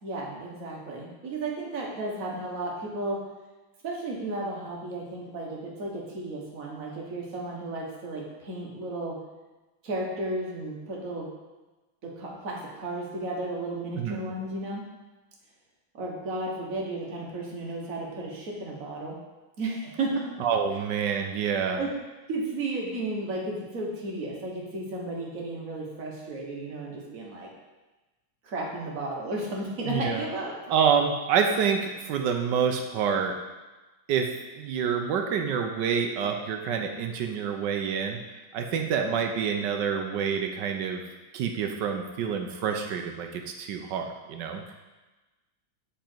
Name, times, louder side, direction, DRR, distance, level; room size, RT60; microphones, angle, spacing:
voice 1, 0.0-3.2 3.8-9.2 9.8-11.3 12.0-14.8 15.9-19.2 19.6-20.4 21.8-21.9 22.3-27.5 28.4-30.5, right 2 dB, 45° right, -2 dB, 1.5 m, -33 dB
voice 2, 20.4-21.8 29.9-30.2 30.7-33.3 34.1-34.3 34.6-38.2 38.5-41.0 41.3-44.7, right 7 dB, 70° right, 4 dB, 1.1 m, -27 dB
7.3 x 5.1 x 4.5 m, 1.2 s
omnidirectional pair, 2.3 m